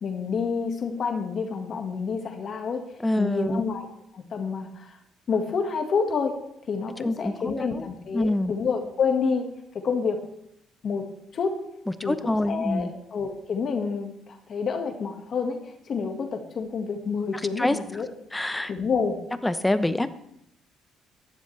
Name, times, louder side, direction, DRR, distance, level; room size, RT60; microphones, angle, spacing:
voice 1, 0.0-2.8 3.2-3.9 4.1-5.0 5.3-6.4 6.7-9.5 9.7-10.2 10.8-11.1 11.3-11.6 12.0-15.6 15.9-18.1 18.7-19.2, left 5 dB, 50° left, 4 dB, 1.8 m, -28 dB
voice 2, 3.0-3.6 7.0-7.9 8.1-8.5 12.0-12.9 17.3-18.0 18.3-18.7 19.4-20.1, left 1 dB, 10° left, 11 dB, 0.9 m, -26 dB
15.0 x 11.5 x 3.3 m, 0.75 s
cardioid pair, 95°, 0 cm